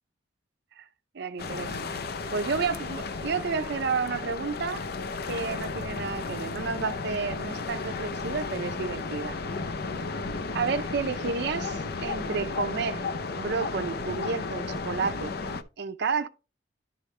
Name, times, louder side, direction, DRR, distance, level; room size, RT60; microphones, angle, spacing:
voice 1, 1.1-2.0 2.3-4.9 5.3-9.4 10.5-13.0 13.4-15.3 15.8-16.3, right 5 dB, 60° right, 0.5 m, -31 dB
sound 1, 1.4-15.6, left 4 dB, 55° left, 0.6 m, -34 dB
11.5 x 5.0 x 3.2 m
head